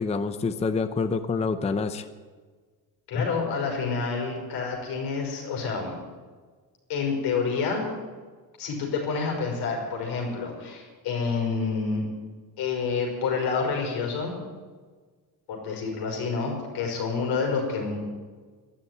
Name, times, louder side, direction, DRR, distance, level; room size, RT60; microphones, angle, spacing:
voice 1, 0.0-2.1 3.1-3.3, left 4 dB, 15° left, 10 dB, 0.6 m, -27 dB
voice 2, 3.1-5.9 6.9-7.9 8.6-12.0 12.6-14.4 15.5-18.0, left 5 dB, 80° left, 1 dB, 5.5 m, -28 dB
12.5 x 11.5 x 9.6 m, 1.5 s
cardioid pair, 150°, 39 cm